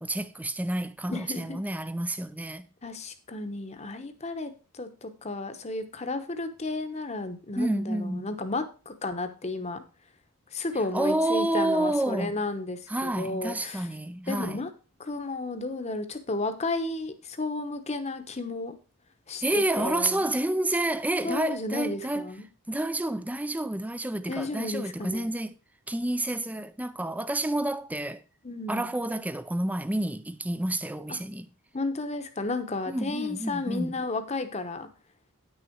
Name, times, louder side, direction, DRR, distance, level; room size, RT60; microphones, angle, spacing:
voice 1, 0.0-2.7 7.6-8.3 10.9-12.4 12.9-14.6 19.4-22.3 22.7-25.5 25.9-28.2 28.7-31.5 32.9-33.9, right 1 dB, 5° right, 0.4 m, -29 dB
voice 2, 1.1-1.6 2.8-9.8 10.5-13.9 14.3-14.7 15.0-18.7 19.3-20.3 21.2-22.5 24.3-25.3 28.4-28.9 31.7-34.9, left 2 dB, 30° left, 0.9 m, -33 dB
9.5 x 6.4 x 4.6 m
head